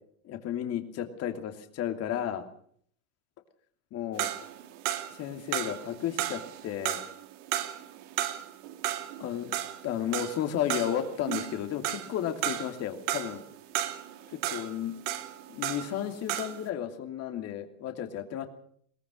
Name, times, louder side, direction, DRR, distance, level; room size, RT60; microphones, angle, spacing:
voice 1, 0.2-2.4 3.9-4.3 5.2-7.0 9.2-9.5 9.8-13.4 14.3-15.0 15.5-18.5, left 10 dB, 40° left, 7 dB, 2.7 m, -33 dB
sound 1, 4.2-16.0 16.3-16.6, right 13 dB, 65° right, 2.5 m, -34 dB
22.0 x 18.0 x 6.4 m, 0.62 s
supercardioid pair, 130°, 40 cm